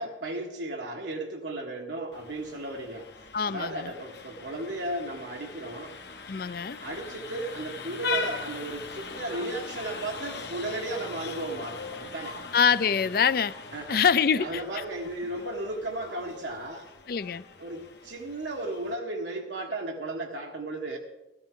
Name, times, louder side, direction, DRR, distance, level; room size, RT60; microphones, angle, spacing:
voice 1, 0.0-6.0 6.8-12.4 13.7-14.0 14.3-16.9 17.6-21.0, right 2 dB, 85° right, 0 dB, 1.5 m, -35 dB
Vehicle horn car horn honking, 2.1-18.9, left 4 dB, 70° left, 1.3 m, -40 dB
voice 2, 3.3-3.9 6.3-6.8 12.5-13.5 13.9-14.6 17.1-17.4, left 7 dB, 55° left, 15 dB, 0.4 m, -24 dB
17.5 x 14.0 x 3.8 m, 0.94 s
head